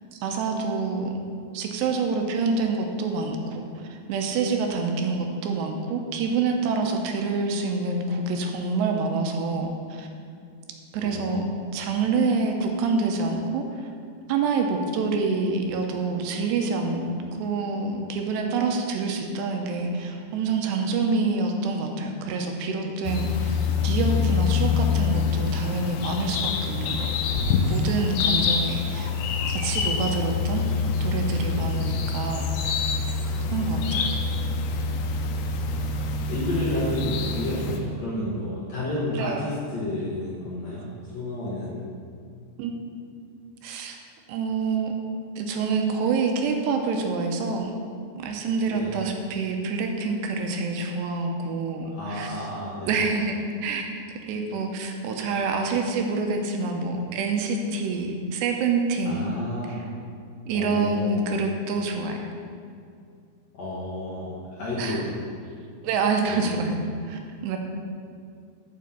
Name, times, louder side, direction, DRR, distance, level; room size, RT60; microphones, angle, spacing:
voice 1, 0.1-1.2 1.5-10.1 10.9-11.5 11.7-13.9 14.3-29.1 29.5-30.6 31.0-32.5 33.5-34.1 39.1-39.5 42.6-42.7 43.6-44.0 44.3-44.9 45.4-47.7 48.2-52.4 52.9-53.8 54.1-59.3 59.7-59.8 60.5-62.3 64.8-65.0 65.8-67.6, right 4 dB, 80° right, 3 dB, 2.8 m, -27 dB
voice 2, 11.0-11.5 33.3-33.8 35.7-41.8 48.7-49.0 51.9-52.9 59.1-59.8 60.5-61.2 63.5-65.2 66.3-66.6, left 1 dB, 55° left, -8 dB, 2.0 m, -31 dB
sound 1, 23.0-37.8, left 5 dB, 90° left, 2.9 m, -26 dB
7.6 x 6.2 x 6.9 m, 2.3 s
omnidirectional pair, 5.0 m